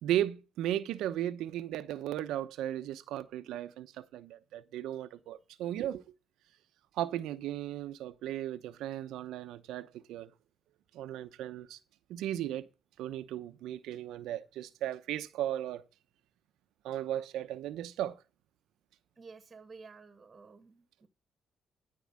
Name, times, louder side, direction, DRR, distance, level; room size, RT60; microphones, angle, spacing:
voice 1, 0.0-6.0 7.0-10.3 10.9-11.8 12.1-12.7 13.0-15.8 16.8-18.2, right 12 dB, 90° right, 0.8 m, -36 dB
voice 2, 19.2-21.1, right 4 dB, 30° right, 1.5 m, -52 dB
13.5 x 4.7 x 7.5 m
cardioid pair, 90°, 0 cm